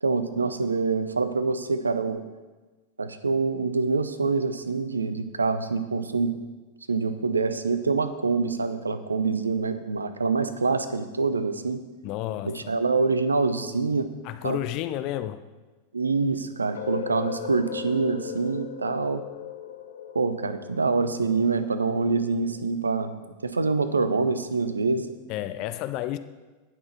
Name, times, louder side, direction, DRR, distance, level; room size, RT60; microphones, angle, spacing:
voice 1, 0.0-2.2 3.0-6.4 6.9-11.8 12.4-14.1 14.4-14.6 15.9-19.2 20.1-23.1 23.4-25.1, right 4 dB, 75° right, 0.6 m, -25 dB
voice 2, 12.0-12.7 14.2-15.4 25.3-26.2, left 13 dB, 40° left, 0.5 m, -31 dB
sound 1, 16.7-22.6, left 9 dB, 65° left, 0.8 m, -38 dB
18.5 x 6.1 x 4.2 m
figure-of-eight pair, 90°, 0 cm